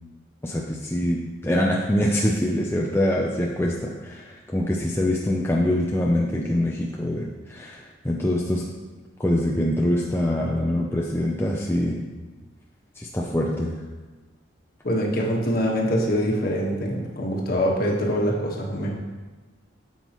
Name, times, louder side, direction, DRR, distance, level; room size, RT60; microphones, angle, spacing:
voice 1, 0.4-8.6 9.2-12.0 13.0-13.8, left 1 dB, 10° left, -2 dB, 0.5 m, -24 dB
voice 2, 14.8-19.0, equal, 45° left, -1 dB, 1.4 m, -24 dB
9.7 x 7.3 x 3.0 m, 1.2 s
head